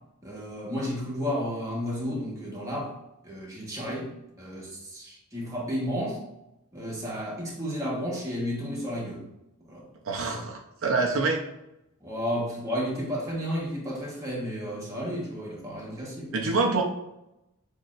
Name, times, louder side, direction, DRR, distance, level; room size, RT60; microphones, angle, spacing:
voice 1, 0.2-3.0 3.2-4.1 4.4-6.2 6.7-9.2 9.7-9.8 12.0-16.4, equal, 15° right, -4 dB, 1.2 m, -32 dB
voice 2, 10.0-11.4 16.3-16.8, right 3 dB, 70° right, 1 dB, 0.6 m, -26 dB
6.5 x 2.8 x 2.4 m, 0.87 s
head